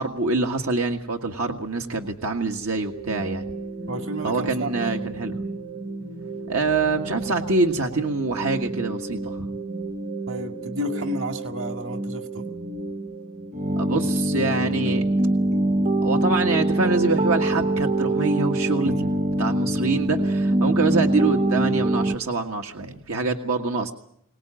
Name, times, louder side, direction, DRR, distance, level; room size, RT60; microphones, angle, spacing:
voice 1, 0.0-3.5 4.2-5.3 6.5-9.5 13.7-15.0 16.0-23.9, right 3 dB, 85° right, 3 dB, 1.7 m, -25 dB
sound 1, 2.9-22.2, right 1 dB, 35° right, 1.0 m, -26 dB
voice 2, 3.9-5.0 10.3-12.5, equal, 65° right, 6 dB, 2.1 m, -31 dB
23.5 x 19.0 x 8.9 m, 0.73 s
head